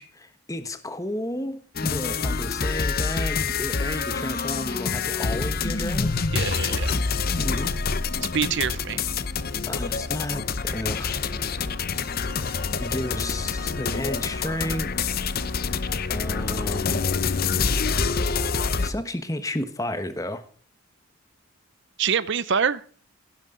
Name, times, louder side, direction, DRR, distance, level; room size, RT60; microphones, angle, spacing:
voice 1, 0.0-6.3 7.4-7.7 9.7-11.2 12.8-15.1 16.1-17.0 18.8-20.4, left 1 dB, 15° left, 1.2 m, -32 dB
sound 1, 1.7-18.9, left 5 dB, 40° left, 0.7 m, -26 dB
voice 2, 6.3-7.0 8.3-9.0 22.0-22.8, right 7 dB, 55° right, 0.6 m, -25 dB
16.5 x 11.5 x 3.8 m
head